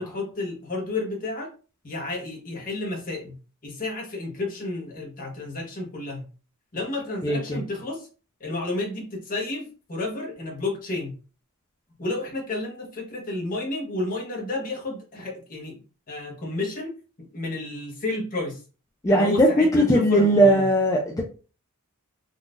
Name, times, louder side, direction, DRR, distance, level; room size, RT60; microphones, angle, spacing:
voice 1, 0.0-1.5 1.8-3.4 3.6-6.3 6.7-8.1 8.4-11.1 12.0-15.8 16.1-16.9 17.3-18.6 19.1-20.7, left 2 dB, 40° left, 0 dB, 1.0 m, -31 dB
voice 2, 7.2-7.6 19.0-21.2, equal, 15° left, -1 dB, 0.4 m, -19 dB
3.8 x 2.4 x 2.5 m, 0.35 s
head